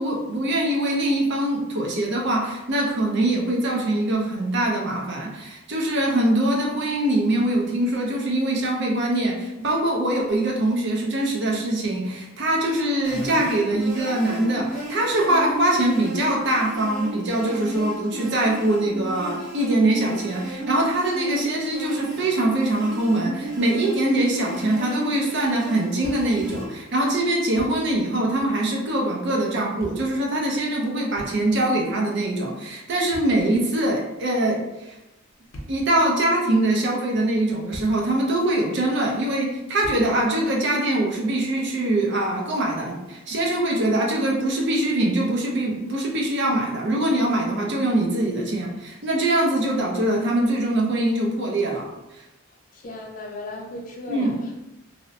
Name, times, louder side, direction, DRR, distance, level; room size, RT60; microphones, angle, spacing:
voice 1, 0.0-34.9 35.7-51.9 52.1-52.2 54.1-54.3, right 1 dB, 55° right, -1 dB, 0.5 m, -23 dB
sound 1, 13.0-26.7, right 2 dB, 40° right, 1.1 m, -34 dB
Thump thud, 26.0-26.6 26.8-26.9 27.4-28.1 28.4-28.6 29.5-30.2 31.1-31.8 32.9-33.9 35.3-36.0 36.7-36.8 37.4-38.2 38.4-38.6 39.8-40.3, equal, 85° left, 0.6 m, -41 dB
voice 2, 52.7-54.5, left 1 dB, 40° left, 0 dB, 0.4 m, -36 dB
2.7 x 2.0 x 2.6 m, 0.98 s
head